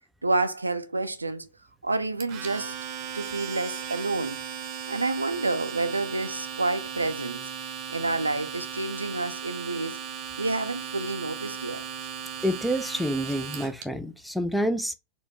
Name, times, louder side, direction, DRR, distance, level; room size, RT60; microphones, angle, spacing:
voice 1, 0.2-1.5 1.8-2.8 3.1-4.4 4.9-10.0 10.4-11.8, right 2 dB, 80° right, 0.3 m, -29 dB
Domestic sounds home sounds, 2.2-13.8, right 7 dB, 40° right, 0.7 m, -37 dB
voice 2, 12.4-14.9, equal, ahead, 0.4 m, -28 dB
4.2 x 2.2 x 2.7 m
figure-of-eight pair, 90°, 0 cm